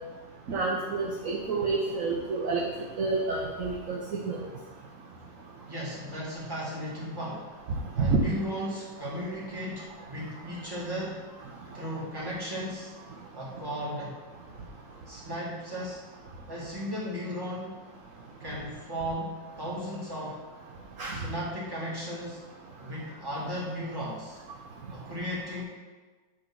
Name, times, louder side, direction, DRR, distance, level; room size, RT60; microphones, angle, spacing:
voice 1, 0.5-2.6 3.0-4.0 4.3-4.4 7.7-8.2 21.0-21.2, right 4 dB, 55° right, -1 dB, 1.1 m, -28 dB
voice 2, 5.6-7.5 7.9-11.2 11.7-12.9 13.3-14.2 15.1-16.0 16.5-17.7 18.4-20.4 21.1-22.4 22.8-24.4 24.9-25.6, equal, 10° right, -6 dB, 2.2 m, -35 dB
9.7 x 3.7 x 6.1 m, 1.3 s
omnidirectional pair, 2.0 m